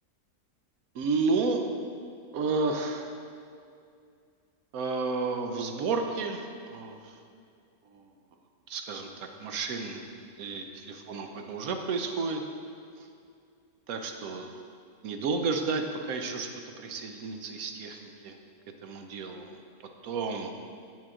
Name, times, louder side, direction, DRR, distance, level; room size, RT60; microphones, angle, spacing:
voice 1, 0.9-1.6 2.3-3.2 4.7-7.2 7.9-8.1 8.7-10.0 10.4-12.4 13.0-13.1 13.9-14.5 15.0-16.5 16.8-18.4 18.8-19.6 20.0-20.5, right 4 dB, 70° right, 4 dB, 1.1 m, -31 dB
7.9 x 7.4 x 3.7 m, 2.4 s
omnidirectional pair, 1.6 m